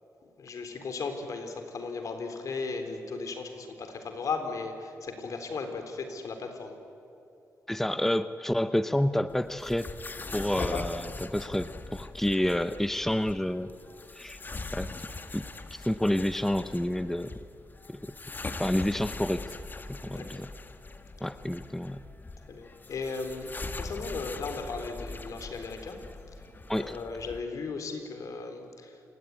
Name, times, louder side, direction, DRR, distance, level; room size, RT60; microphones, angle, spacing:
voice 1, 0.2-6.8 10.6-10.8 20.1-20.4 21.2-21.3 22.5-26.4 26.7-29.0, left 4 dB, 65° left, 6 dB, 3.8 m, -36 dB
voice 2, 7.7-9.9 10.3-13.7 14.1-14.4 14.7-14.9 15.3-17.3 17.9-18.1 18.6-19.4 19.9-20.5 21.2-22.0 26.7-27.0, left 1 dB, 5° left, 12 dB, 0.8 m, -29 dB
sound 1, 9.3-27.4, left 3 dB, 30° left, 1.6 m, -42 dB
28.0 x 17.5 x 9.7 m, 2.8 s
cardioid pair, 80°, 6 cm